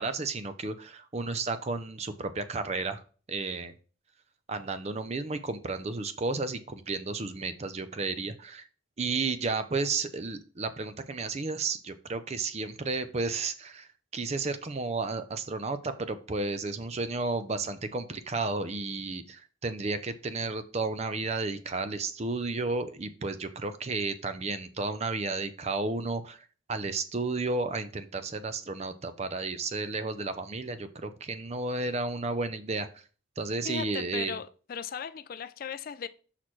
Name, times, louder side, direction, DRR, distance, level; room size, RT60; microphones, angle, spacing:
voice 1, 0.0-3.0 3.3-3.7 4.5-8.7 9.0-32.9 33.4-34.4, right 3 dB, 35° right, 0.5 m, -32 dB
voice 2, 33.6-36.1, left 7 dB, 45° left, 0.3 m, -37 dB
6.2 x 5.8 x 3.1 m
head